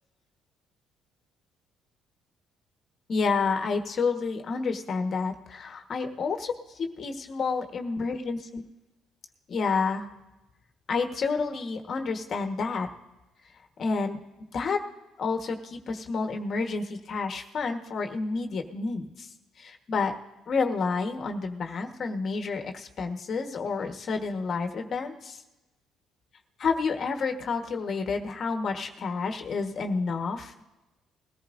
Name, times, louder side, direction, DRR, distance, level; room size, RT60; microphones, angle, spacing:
voice 1, 3.1-8.6 9.5-10.1 10.9-12.9 13.8-14.2 14.5-14.8 15.2-19.3 19.6-20.1 20.5-25.4 26.6-30.6, left 4 dB, 50° left, 5 dB, 1.3 m, -29 dB
21.5 x 14.0 x 2.6 m, 1.0 s
cardioid pair, 95°, 0 cm